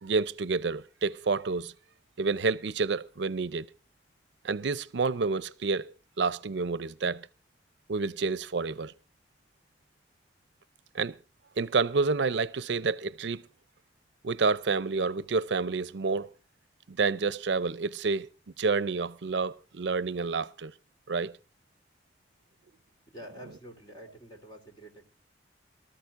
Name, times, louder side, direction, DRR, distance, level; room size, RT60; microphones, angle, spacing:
voice 1, 0.0-1.7 2.2-3.7 4.4-7.3 7.9-8.9 10.9-11.1 11.6-13.4 14.2-16.3 16.9-18.3 18.6-20.7 21.1-21.4, right 4 dB, 75° right, 0.6 m, -29 dB
voice 2, 23.1-25.0, equal, 25° left, 3.4 m, -47 dB
24.0 x 13.5 x 2.5 m
head